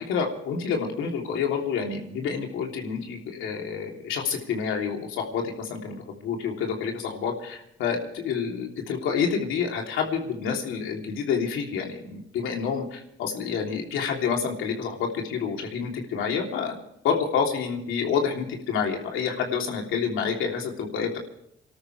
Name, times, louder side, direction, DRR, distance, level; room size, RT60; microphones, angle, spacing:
voice 1, 0.0-16.8 17.0-21.2, left 6 dB, 85° left, 1 dB, 3.2 m, -28 dB
28.0 x 13.0 x 3.3 m, 0.76 s
cardioid pair, 90°, 20 cm